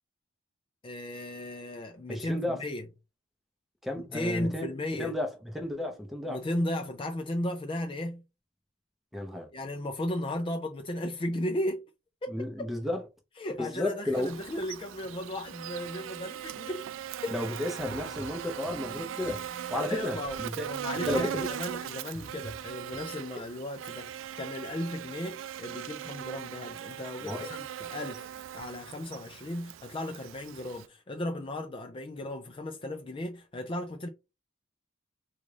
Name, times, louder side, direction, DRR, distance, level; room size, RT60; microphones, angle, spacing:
voice 1, 0.8-2.9 4.0-5.1 6.3-8.2 9.5-11.8 12.2-12.5 13.4-16.8 17.2-17.5 19.9-34.1, left 1 dB, 25° left, 0.4 m, -35 dB
voice 2, 2.1-2.6 3.8-4.7 5.0-6.4 9.1-9.5 12.3-13.0 13.6-14.3 17.3-20.7 20.9-21.5 27.2-27.5, left 1 dB, ahead, 0.7 m, -33 dB
Buzz, 14.1-30.9, right 10 dB, 70° right, 0.3 m, -39 dB
sound 1, 17.8-23.0, equal, 45° left, 0.9 m, -48 dB
3.9 x 2.4 x 3.2 m
head